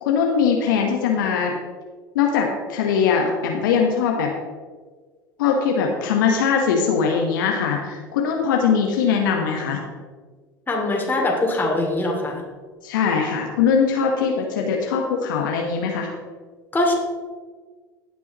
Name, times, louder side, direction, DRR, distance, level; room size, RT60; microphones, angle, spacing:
voice 1, 0.0-1.5 2.1-4.3 5.4-9.8 12.8-16.1, left 6 dB, 70° left, 1 dB, 1.2 m, -21 dB
voice 2, 10.7-12.4 16.7-16.9, left 2 dB, 15° left, -1 dB, 2.6 m, -22 dB
16.5 x 6.1 x 3.0 m, 1.5 s
figure-of-eight pair, 75°, 11 cm